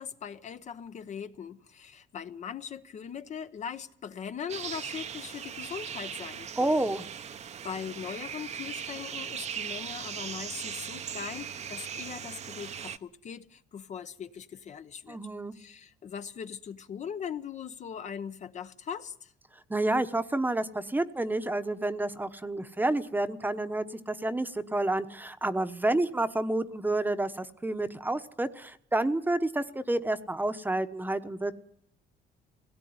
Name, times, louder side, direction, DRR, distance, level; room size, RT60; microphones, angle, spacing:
voice 1, 0.0-6.9 7.6-15.2 15.5-19.3, left 7 dB, 45° left, 0.9 m, -40 dB
sound 1, 4.5-13.0, right 8 dB, 40° right, 0.8 m, -39 dB
voice 2, 6.6-7.1 15.1-15.5 19.7-31.6, right 2 dB, 10° right, 1.0 m, -29 dB
21.0 x 17.5 x 9.5 m
cardioid pair, 110°, 17 cm